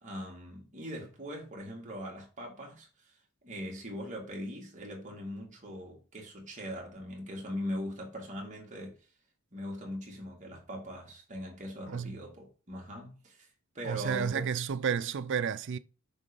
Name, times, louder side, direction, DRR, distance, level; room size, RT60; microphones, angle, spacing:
voice 1, 0.0-3.1 3.4-9.0 9.5-13.5 13.7-14.5, equal, 35° right, 2.2 m, -41 dB
voice 2, 11.9-12.2 13.8-15.8, right 7 dB, 55° right, 0.4 m, -31 dB
6.3 x 3.7 x 5.3 m
head